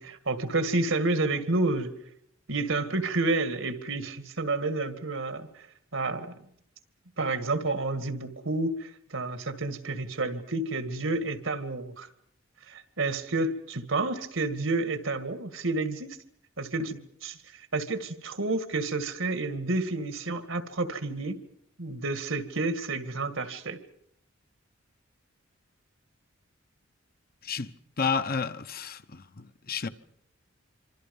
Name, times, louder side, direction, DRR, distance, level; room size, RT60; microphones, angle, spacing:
voice 1, 0.0-1.9 2.5-5.7 5.9-6.4 7.2-12.1 12.7-16.2 16.6-21.4 21.8-23.8, right 2 dB, 75° right, 2.0 m, -30 dB
voice 2, 27.4-29.9, left 5 dB, 50° left, 0.9 m, -31 dB
26.0 x 26.0 x 5.4 m
head